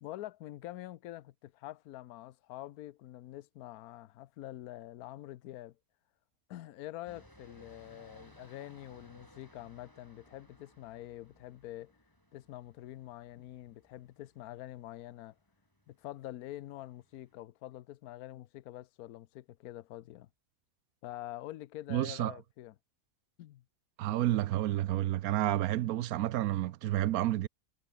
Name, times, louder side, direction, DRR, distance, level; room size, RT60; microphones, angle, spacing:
voice 1, 0.0-5.8 6.5-11.9 12.3-15.3 15.9-20.3 21.0-22.7 23.4-23.6, left 15 dB, 70° left, 1.1 m, -46 dB
sound 1, 7.0-17.4, equal, 10° left, 8.1 m, -61 dB
voice 2, 21.9-22.3 24.0-27.5, right 14 dB, 70° right, 1.0 m, -30 dB
omnidirectional pair, 1.7 m